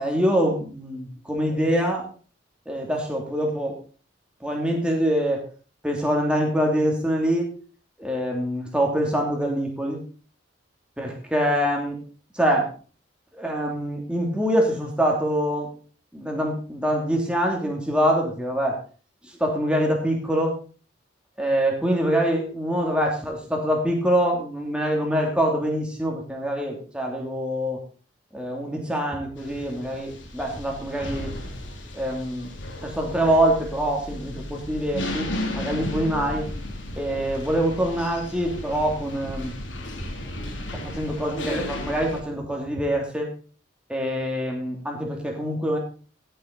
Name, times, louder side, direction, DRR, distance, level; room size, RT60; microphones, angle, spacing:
voice 1, 0.0-2.0 2.7-3.8 4.4-5.4 5.8-7.5 8.0-10.0 11.0-12.0 12.3-12.7 13.3-15.7 16.1-18.8 19.4-20.6 21.4-27.8 28.3-31.3 31.9-32.5 32.8-35.3 35.5-36.4 37.0-39.6 40.9-43.3 43.9-45.8, equal, 5° right, 0 dB, 3.0 m, -24 dB
sound 1, 29.4-42.2, left 1 dB, 80° left, 2.9 m, -34 dB
15.5 x 7.9 x 4.2 m, 0.38 s
head